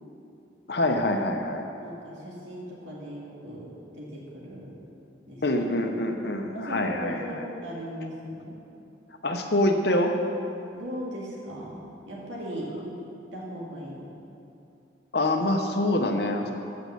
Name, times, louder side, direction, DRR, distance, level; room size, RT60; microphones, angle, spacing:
voice 1, 0.7-1.6 5.4-7.4 9.2-10.1 15.1-16.5, left 1 dB, 60° left, 4 dB, 0.8 m, -25 dB
voice 2, 1.8-4.8 5.3-5.4 6.5-8.6 10.7-13.0 13.3-14.1, equal, 80° right, -5 dB, 2.0 m, -38 dB
8.5 x 6.3 x 6.9 m, 2.7 s
head